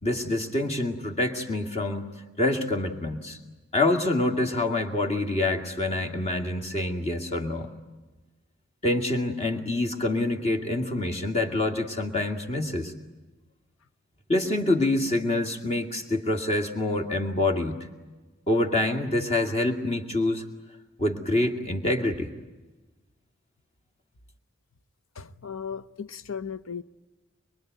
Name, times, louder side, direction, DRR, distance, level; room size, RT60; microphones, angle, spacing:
voice 1, 0.0-2.1 2.4-3.4 3.7-7.7 8.8-12.9 14.3-17.9 18.5-20.4 21.0-22.3, left 2 dB, 30° left, 2.2 m, -26 dB
voice 2, 25.2-26.8, left 6 dB, 85° left, 0.8 m, -36 dB
24.0 x 23.0 x 9.4 m
head